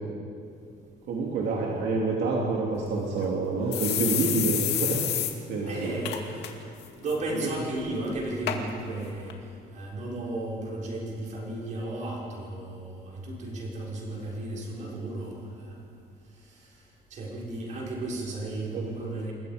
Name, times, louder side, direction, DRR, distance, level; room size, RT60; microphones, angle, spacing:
voice 1, 1.1-5.0 5.5-5.9 18.7-18.8, right 3 dB, 75° right, -2 dB, 3.1 m, -27 dB
sound 1, 2.8-2.9 3.2-3.3 3.7-5.3 5.7-5.8 6.1-6.5 6.8-7.2 7.8-7.9 8.5-8.6 9.3-9.4, left 11 dB, 85° left, 2.3 m, -28 dB
voice 2, 5.7-6.4 6.9-9.4 9.7-15.8 16.4-16.8 17.1-19.3, right 2 dB, 45° right, -4 dB, 6.1 m, -34 dB
28.0 x 21.5 x 5.3 m, 2.5 s
cardioid pair, 175°, 17 cm